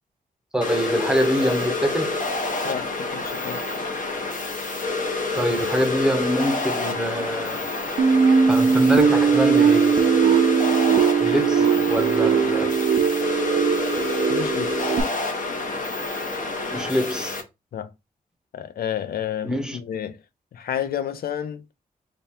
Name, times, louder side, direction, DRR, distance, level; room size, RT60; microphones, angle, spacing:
voice 1, 0.5-2.2 5.4-7.6 8.5-10.2 11.2-12.7 16.7-17.4 19.4-19.8, equal, 5° right, 0.7 m, -25 dB
sound 1, 0.6-17.4, left 3 dB, 60° left, 0.9 m, -28 dB
voice 2, 2.6-3.9 11.6-11.9 14.3-15.0 17.7-17.9 18.5-20.2 20.5-21.6, left 9 dB, 90° left, 0.5 m, -31 dB
sound 2, 8.0-15.0, right 6 dB, 70° right, 0.5 m, -19 dB
3.4 x 2.3 x 4.2 m
wide cardioid pair, 160°, 15 cm